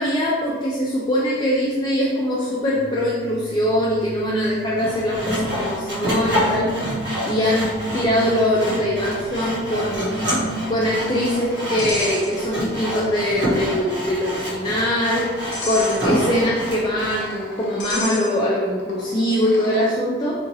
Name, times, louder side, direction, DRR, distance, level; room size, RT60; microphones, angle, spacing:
voice 1, 0.0-6.7 7.2-7.7 7.9-10.2 10.7-15.3 15.6-20.3, left 1 dB, 25° left, -5 dB, 0.3 m, -22 dB
sound 1, 2.7-11.3, right 2 dB, 80° right, 0.6 m, -33 dB
Sawing, 4.8-17.2, equal, 65° right, 1.2 m, -27 dB
sound 2, 10.1-12.8 13.1-13.2 14.0-19.9, left 2 dB, 70° left, 0.6 m, -35 dB
2.8 x 2.6 x 2.7 m, 1.5 s
head